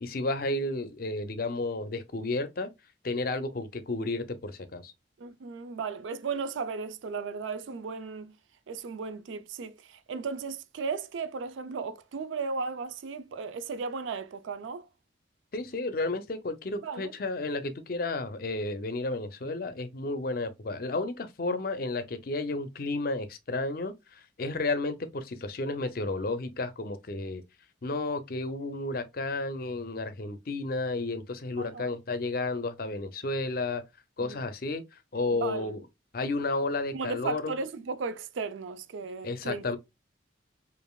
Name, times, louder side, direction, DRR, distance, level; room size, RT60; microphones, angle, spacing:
voice 1, 0.0-2.7 3.0-4.9 15.5-27.4 27.8-33.8 34.2-34.8 35.1-35.8 36.1-37.5 39.2-39.8, left 2 dB, 50° left, 0.5 m, -32 dB
voice 2, 5.2-8.3 8.7-14.9 16.8-17.1 31.6-32.0 34.2-34.4 35.3-35.8 36.9-39.6, right 4 dB, 80° right, 0.4 m, -35 dB
5.1 x 2.5 x 2.2 m
head